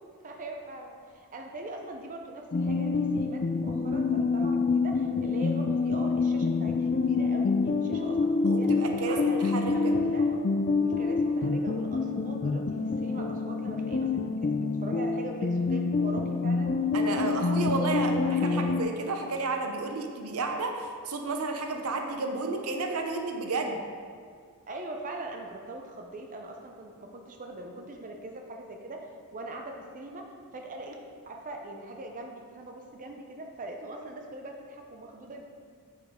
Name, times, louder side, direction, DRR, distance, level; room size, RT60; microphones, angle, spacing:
voice 1, 0.2-8.7 9.0-10.4 10.8-16.7 17.2-18.8 24.7-35.4, right 1 dB, 35° right, 2 dB, 0.6 m, -41 dB
sound 1, 2.5-18.8, left 4 dB, 35° left, 0.3 m, -27 dB
voice 2, 8.4-9.9 16.9-18.1 18.4-23.9, right 3 dB, 80° right, 4 dB, 0.8 m, -32 dB
9.0 x 5.6 x 3.6 m, 2.1 s
head